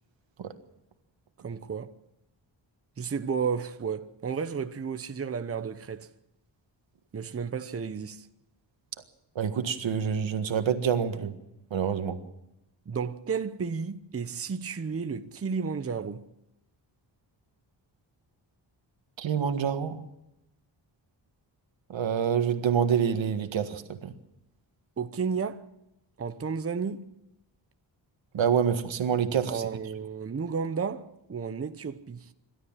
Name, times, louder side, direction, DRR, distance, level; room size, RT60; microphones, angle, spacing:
voice 1, 1.4-2.0 3.0-6.1 7.1-8.3 12.9-16.3 25.0-25.6 26.2-27.1 29.5-32.3, right 6 dB, 30° right, 0.9 m, -32 dB
voice 2, 9.3-11.3 11.7-12.2 19.2-20.0 21.9-24.1 28.3-29.6, right 7 dB, 85° right, 1.7 m, -27 dB
27.5 x 13.0 x 7.4 m
wide cardioid pair, 115°, 45 cm